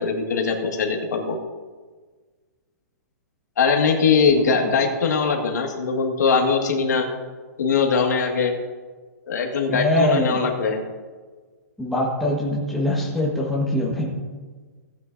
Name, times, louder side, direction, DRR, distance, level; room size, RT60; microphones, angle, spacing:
voice 1, 0.0-1.4 3.6-7.1 7.6-8.5 9.3-10.8, left 5 dB, 85° left, 2 dB, 1.9 m, -21 dB
voice 2, 4.4-4.7 9.7-10.4 11.8-14.1, left 1 dB, ahead, -4 dB, 1.4 m, -23 dB
16.0 x 9.5 x 2.7 m, 1.4 s
hypercardioid pair, 170°, 9 cm